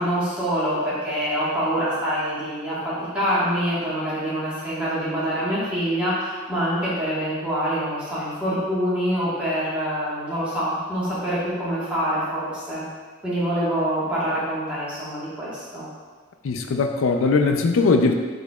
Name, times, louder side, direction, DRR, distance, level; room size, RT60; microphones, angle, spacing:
voice 1, 0.0-12.8 13.2-15.8, equal, 5° right, -10 dB, 1.2 m, -25 dB
voice 2, 16.4-18.1, left 4 dB, 90° left, 5 dB, 0.4 m, -20 dB
4.8 x 4.5 x 2.3 m, 1.5 s
head